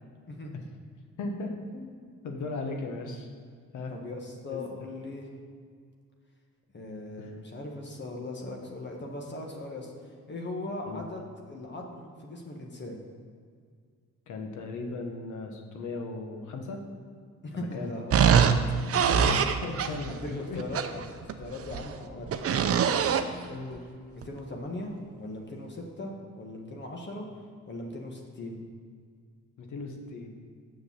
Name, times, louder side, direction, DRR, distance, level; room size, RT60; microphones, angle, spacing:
voice 1, 0.3-0.6 3.9-5.3 6.7-9.9 10.3-13.0 17.4-18.5 19.2-19.4 20.1-22.8 23.0-23.3 24.2-27.3 27.7-28.6, left 2 dB, 35° left, 1 dB, 1.5 m, -39 dB
voice 2, 1.2-2.0 2.2-3.3 3.7-4.0 4.5-4.9 7.2-7.3 10.9-11.1 14.3-16.9 17.5-17.9 18.7-20.6 23.5-23.9 29.6-30.4, left 3 dB, 80° left, 3 dB, 1.4 m, -37 dB
sound 1, 18.1-20.1 20.6-21.9 22.3-23.3 24.2-24.3, right 7 dB, 50° right, 0.6 m, -23 dB
7.0 x 6.5 x 7.4 m, 2.1 s
cardioid pair, 90°, 30 cm